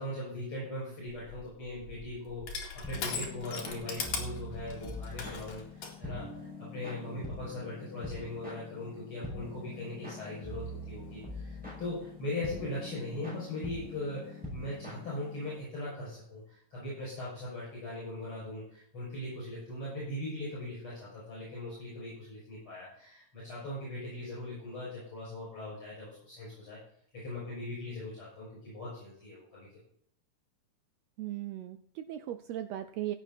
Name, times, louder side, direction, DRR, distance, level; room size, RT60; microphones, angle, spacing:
voice 1, 0.0-26.8 27.1-29.7, left 1 dB, 45° left, -6 dB, 7.5 m, -40 dB
Crushing, 1.1-6.0, left 5 dB, 60° left, 3.4 m, -40 dB
sound 1, 2.8-15.6, left 1 dB, ahead, 6.0 m, -44 dB
voice 2, 31.2-33.2, right 13 dB, 85° right, 10 dB, 1.5 m, -38 dB
16.0 x 8.1 x 4.2 m, 0.67 s
omnidirectional pair, 3.6 m